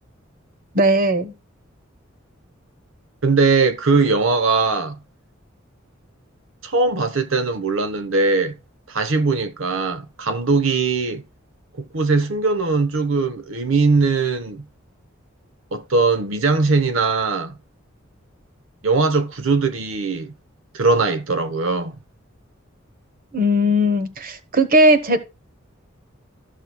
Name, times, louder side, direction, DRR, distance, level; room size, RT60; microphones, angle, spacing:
voice 1, 0.7-1.3 23.3-25.2, equal, 45° right, 1.2 m, -17 dB
voice 2, 3.2-5.0 6.6-8.6 8.9-11.2 11.8-14.7 15.7-17.6 18.8-20.3 20.7-22.0, right 4 dB, 75° right, 1.0 m, -20 dB
14.0 x 6.4 x 2.3 m
head